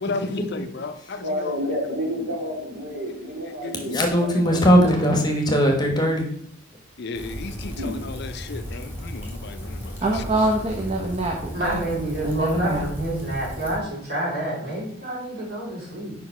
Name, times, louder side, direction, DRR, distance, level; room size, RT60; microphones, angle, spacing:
voice 1, 0.0-1.6 3.4-4.5 7.0-10.2, left 3 dB, 55° left, 10 dB, 0.5 m, -34 dB
voice 2, 1.2-4.9 7.4-7.9, equal, 70° right, -4 dB, 2.8 m, -30 dB
voice 3, 3.9-6.3, equal, 20° left, 2 dB, 1.0 m, -19 dB
Rain, 7.1-13.8, equal, 10° right, 1.5 m, -35 dB
voice 4, 10.0-11.8 12.2-12.8, right 1 dB, 30° right, 0 dB, 0.7 m, -24 dB
voice 5, 11.5-16.1, right 1 dB, 50° right, -5 dB, 2.9 m, -28 dB
5.1 x 4.7 x 5.5 m, 0.67 s
head